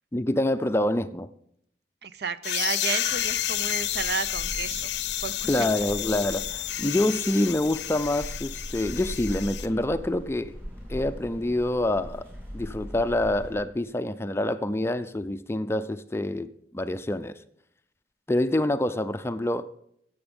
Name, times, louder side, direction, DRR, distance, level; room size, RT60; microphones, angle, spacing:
voice 1, 0.1-1.3 5.5-10.5 10.9-12.2 12.5-17.4 18.3-19.7, left 1 dB, 15° left, 0.4 m, -26 dB
voice 2, 2.0-4.9 5.2-5.9, right 6 dB, 65° right, 0.6 m, -32 dB
sound 1, 2.4-9.7, left 13 dB, 75° left, 0.6 m, -31 dB
sound 2, 3.0-13.5, equal, 15° right, 4.3 m, -41 dB
16.0 x 7.1 x 5.2 m
head